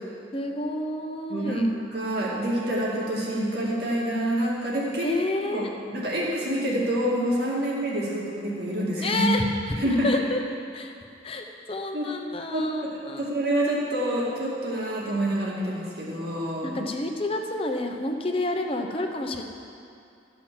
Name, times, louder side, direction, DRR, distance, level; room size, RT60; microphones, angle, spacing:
voice 1, 0.3-1.7 5.0-5.7 9.0-9.5 9.8-10.4 10.7-10.9 11.2-13.2 16.6-19.4, left 2 dB, 30° left, 3 dB, 0.9 m, -29 dB
voice 2, 1.3-5.1 5.5-9.4 9.8-10.1 11.9-12.1 12.5-16.8, right 1 dB, 55° right, -5 dB, 2.2 m, -27 dB
13.5 x 6.0 x 7.4 m, 2.6 s
head